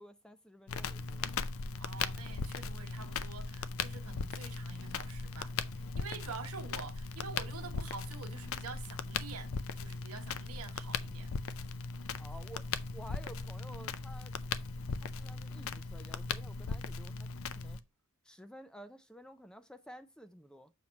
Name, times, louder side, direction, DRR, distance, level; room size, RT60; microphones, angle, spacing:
voice 1, 0.0-1.3 1.7-1.8 12.2-12.7 12.9-14.4 15.0-17.8 18.2-20.7, equal, 5° left, 0.3 m, -52 dB
Crackle, 0.7-17.8, left 4 dB, 70° left, 0.5 m, -38 dB
voice 2, 1.8-9.5 9.8-11.3, right 5 dB, 85° right, 1.0 m, -47 dB
7.1 x 3.0 x 5.1 m
head